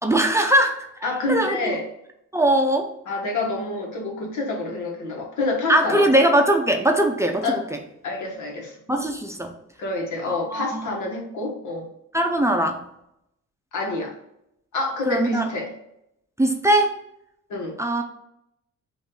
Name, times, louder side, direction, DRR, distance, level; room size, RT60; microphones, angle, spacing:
voice 1, 0.0-0.9 1.3-1.7 2.3-2.9 5.7-7.8 8.9-9.5 10.3-10.9 12.1-12.8 15.1-15.5 16.4-17.0 17.8-18.0, right 1 dB, 10° right, 3 dB, 0.6 m, -20 dB
voice 2, 1.0-1.8 3.1-6.1 7.4-7.6 8.0-8.8 9.8-11.9 13.7-14.1 14.7-15.7 17.5-17.8, left 2 dB, 75° left, 0 dB, 1.4 m, -27 dB
5.1 x 2.6 x 3.9 m, 0.79 s
cardioid pair, 90°, 30 cm